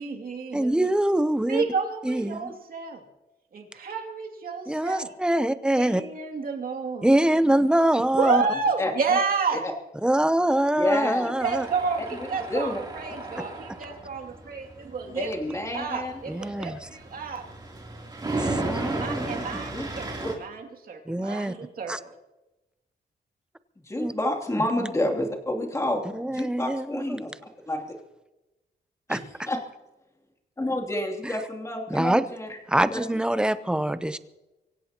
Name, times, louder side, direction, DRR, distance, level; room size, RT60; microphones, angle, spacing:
voice 1, 0.0-0.9 1.5-3.0 3.5-5.1 5.7-7.1 8.1-9.6 11.2-17.4 18.8-20.1 20.4-22.1, right 5 dB, 55° right, 2.6 m, -30 dB
voice 2, 0.5-1.6 2.0-2.5 4.7-6.0 7.0-8.4 10.0-11.7 16.3-16.8 18.4-19.4 21.1-21.5 21.9-22.0 24.0-24.1 24.5-24.9 26.1-27.2 29.1-29.2 31.2-31.3 31.9-32.2 32.7-34.2, right 1 dB, 5° right, 0.7 m, -24 dB
voice 3, 10.7-11.3 12.2-12.8 13.3-13.4 15.1-16.1 19.7-19.9 23.9-26.1 26.3-27.3 27.7-27.9 29.1-29.2 29.5-29.6 30.6-32.6 32.9-33.0 33.3-33.4, left 1 dB, 15° left, 2.9 m, -29 dB
Tools, 11.4-20.3, right 2 dB, 25° right, 3.3 m, -35 dB
24.5 x 16.5 x 3.0 m
wide cardioid pair, 130°, 17 cm